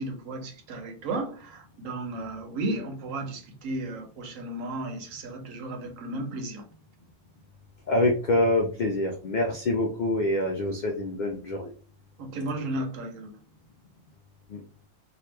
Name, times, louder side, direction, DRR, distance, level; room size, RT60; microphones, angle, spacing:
voice 1, 0.0-6.6 12.2-13.4, right 2 dB, 85° right, 1.1 m, -34 dB
voice 2, 7.9-11.7 14.5-14.6, left 1 dB, 90° left, 0.4 m, -26 dB
2.8 x 2.2 x 3.2 m
omnidirectional pair, 1.3 m